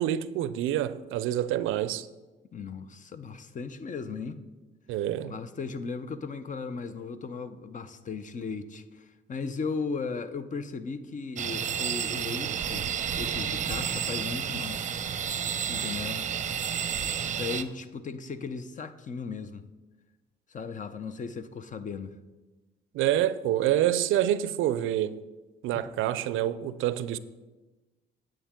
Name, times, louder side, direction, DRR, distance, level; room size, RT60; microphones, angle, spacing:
voice 1, 0.0-2.1 4.9-5.3 22.9-25.2 25.6-27.2, right 12 dB, 85° right, 0.4 m, -27 dB
voice 2, 2.5-4.4 5.2-12.9 13.2-14.8 15.7-16.3 17.4-19.6 20.5-22.2 25.7-25.9, left 4 dB, 40° left, 0.6 m, -36 dB
sound 1, 11.4-17.6, right 8 dB, 40° right, 0.6 m, -31 dB
9.9 x 7.6 x 3.7 m
cardioid pair, 90°, 20 cm